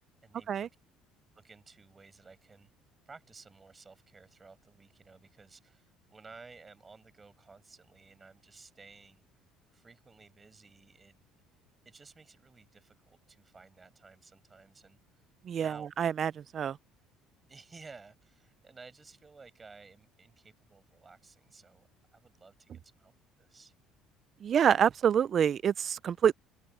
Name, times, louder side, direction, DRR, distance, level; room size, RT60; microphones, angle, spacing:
voice 1, 0.2-0.7 1.3-2.7 3.1-9.2 9.7-11.2 11.8-15.3 15.6-15.9 17.5-23.1 23.4-23.7, right 4 dB, 20° right, 5.5 m, -55 dB
voice 2, 15.4-16.8 24.4-26.3, right 8 dB, 35° right, 0.3 m, -27 dB
cardioid pair, 140°, 0 cm